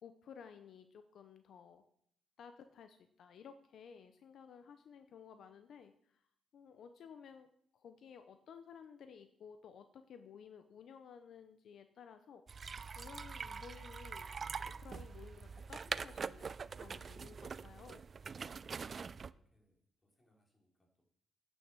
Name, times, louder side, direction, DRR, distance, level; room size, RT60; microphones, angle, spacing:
voice 1, 0.0-1.8 2.4-6.2 6.5-7.5 7.7-12.4 13.0-14.3 14.6-18.0, left 7 dB, 65° left, 8 dB, 0.7 m, -55 dB
sound 1, 12.5-19.3, right 5 dB, 40° right, 0.3 m, -44 dB
voice 2, 18.8-21.0, left 1 dB, 20° left, -1 dB, 3.5 m, -75 dB
9.4 x 6.4 x 6.1 m, 0.66 s
cardioid pair, 90°, 0 cm